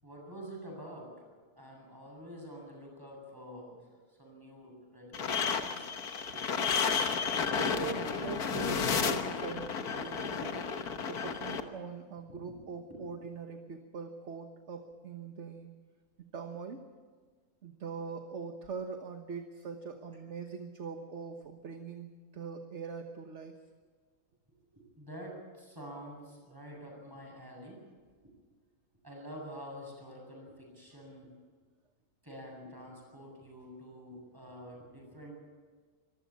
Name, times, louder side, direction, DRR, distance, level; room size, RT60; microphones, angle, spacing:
voice 1, 0.0-1.1 1.6-5.9 12.3-12.6 12.9-13.0 24.8-27.8 28.2-28.3 29.0-31.3 32.2-35.3, equal, 15° right, -1 dB, 7.7 m, -47 dB
sound 1, 5.1-11.6, left 6 dB, 90° left, 1.8 m, -32 dB
voice 2, 7.2-10.6 11.1-15.7 16.3-16.9 17.6-23.6, right 5 dB, 50° right, 6 dB, 1.4 m, -42 dB
25.0 x 15.0 x 8.6 m, 1.5 s
omnidirectional pair, 1.6 m